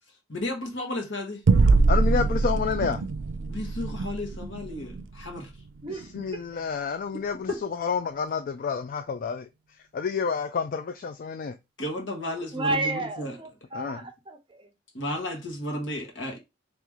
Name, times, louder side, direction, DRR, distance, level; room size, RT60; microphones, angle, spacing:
voice 1, 0.3-1.4 3.5-5.5 7.5-7.6 11.8-13.4 14.9-16.4, left 1 dB, 80° left, 1.5 m, -33 dB
sound 1, 1.5-6.3, right 3 dB, 75° right, 0.4 m, -24 dB
voice 2, 1.9-3.0 5.9-9.5 9.9-11.6 13.7-14.0, left 6 dB, 50° left, 0.3 m, -29 dB
voice 3, 5.8-6.4 12.5-14.7, right 2 dB, 25° right, 0.7 m, -32 dB
3.6 x 3.0 x 3.1 m
head